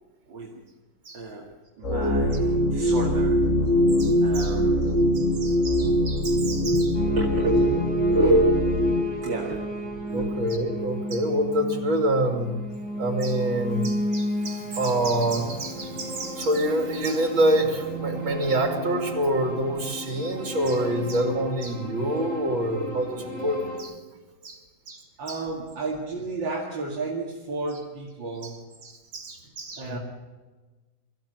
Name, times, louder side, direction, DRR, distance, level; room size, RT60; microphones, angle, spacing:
voice 1, 0.3-0.6 1.1-1.4 1.8-3.5 4.2-5.0 6.4-9.8 10.1-10.4 18.3-18.5 25.2-28.5 29.8-30.0, right 1 dB, 70° right, -1 dB, 3.1 m, -29 dB
sound 1, 1.8-9.0, equal, 40° left, 2.2 m, -22 dB
voice 2, 4.0-4.6 5.1-6.9 10.1-12.5 13.0-24.0 24.4-24.6 24.9-25.4 28.4-30.0, right 1 dB, 90° right, 3 dB, 3.6 m, -27 dB
sound 2, 6.9-23.8, equal, 10° left, 5.6 m, -33 dB
24.0 x 15.0 x 7.9 m, 1.3 s
omnidirectional pair, 2.1 m